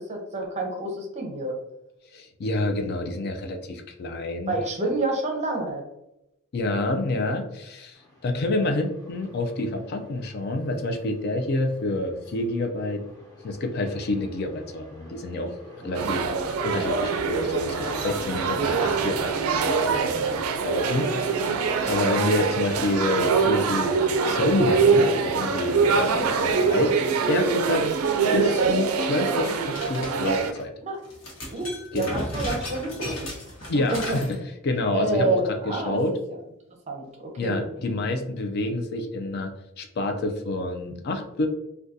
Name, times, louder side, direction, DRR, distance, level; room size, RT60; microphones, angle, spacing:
voice 1, 0.0-1.6 4.5-5.8 16.0-16.1 25.9-26.2 30.8-31.0 31.5-33.3 33.9-34.2 34.9-36.0 36.9-37.6, right 2 dB, 30° right, 2 dB, 0.6 m, -28 dB
voice 2, 2.1-4.5 6.5-13.0 13.4-15.5 15.8-16.3 16.6-19.3 19.6-27.0 27.3-27.9 28.3-30.7 31.9-32.2 33.7-34.4 34.6-35.4 35.7-36.1 37.4-39.5 39.8-41.5, left 2 dB, 50° left, 5 dB, 0.4 m, -28 dB
sound 1, 7.9-27.8, left 1 dB, 15° left, 0.9 m, -45 dB
sound 2, 15.9-30.5, right 5 dB, 90° right, 0.4 m, -24 dB
sound 3, 29.4-30.6 31.0-34.3, equal, 65° left, 1.0 m, -35 dB
3.6 x 2.2 x 2.6 m, 0.87 s
head